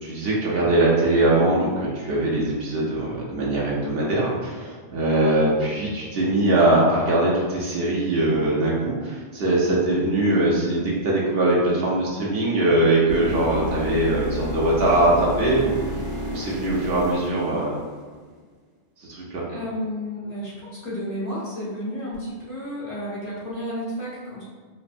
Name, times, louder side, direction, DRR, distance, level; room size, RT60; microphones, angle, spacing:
voice 1, 0.0-15.8 16.3-17.8 19.0-19.4, right 1 dB, 60° right, -5 dB, 0.8 m, -21 dB
sound 1, 13.1-18.2 22.1-22.2, left 1 dB, 80° right, 1.3 m, -31 dB
voice 2, 19.5-24.5, equal, 35° left, -10 dB, 1.0 m, -32 dB
4.1 x 2.0 x 2.5 m, 1.5 s
omnidirectional pair, 1.2 m